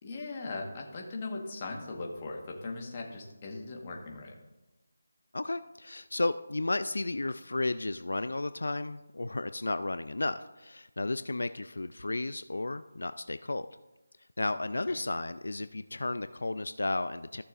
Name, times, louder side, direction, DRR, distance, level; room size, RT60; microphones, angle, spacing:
voice 1, 0.0-4.3 14.9-15.0, left 3 dB, 25° left, 0 dB, 1.4 m, -39 dB
voice 2, 5.3-13.7 14.4-17.4, left 2 dB, 80° left, 12 dB, 0.4 m, -33 dB
14.5 x 6.7 x 2.5 m, 1.0 s
figure-of-eight pair, 170°, 0 cm